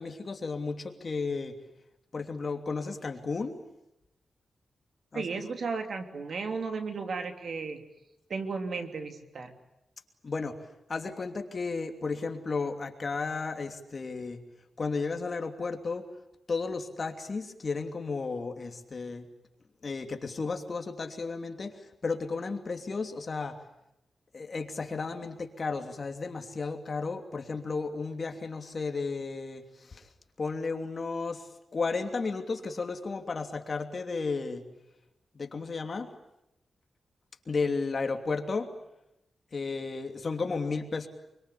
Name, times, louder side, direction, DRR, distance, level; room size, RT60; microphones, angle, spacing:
voice 1, 0.0-1.6 2.1-3.6 5.1-5.4 10.2-10.6 10.9-14.4 14.8-16.0 16.5-19.2 19.8-23.6 24.3-30.1 30.4-34.6 35.3-36.1 37.5-38.7 39.5-41.1, left 4 dB, 40° left, 5 dB, 2.9 m, -33 dB
voice 2, 5.1-7.8 8.3-9.6, right 4 dB, 65° right, 6 dB, 3.1 m, -34 dB
26.0 x 24.5 x 8.6 m, 0.87 s
wide cardioid pair, 125°, 0 cm